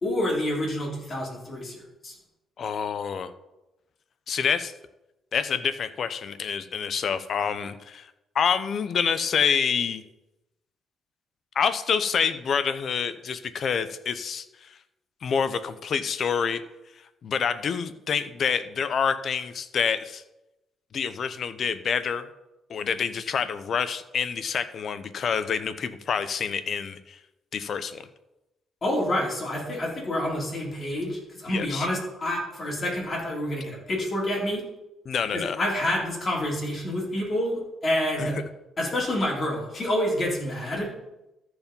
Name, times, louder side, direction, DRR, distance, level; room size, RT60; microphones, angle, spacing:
voice 1, 0.0-2.2 28.8-34.6 35.3-38.4 38.8-40.9, left 1 dB, 40° left, -2 dB, 3.7 m, -28 dB
voice 2, 2.6-3.3 4.3-4.7 5.3-8.1 8.3-10.0 11.5-14.8 15.2-16.6 17.2-20.2 20.9-22.3 22.7-27.2 27.5-28.1 31.5-31.9 35.1-35.6 38.2-38.3, left 6 dB, 55° left, 13 dB, 0.7 m, -27 dB
14.0 x 4.9 x 5.3 m, 0.95 s
cardioid pair, 90°, 0 cm